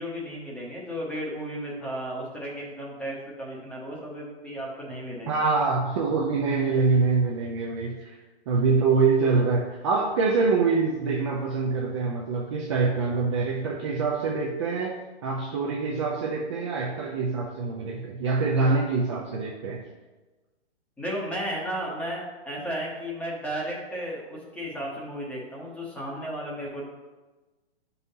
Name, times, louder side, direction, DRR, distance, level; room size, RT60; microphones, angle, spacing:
voice 1, 0.0-5.5 21.0-26.8, equal, 5° left, -3 dB, 0.9 m, -34 dB
voice 2, 5.3-8.2 8.5-19.8, right 4 dB, 25° right, -1 dB, 0.5 m, -25 dB
9.3 x 5.5 x 2.8 m, 1.2 s
hypercardioid pair, 150°, 33 cm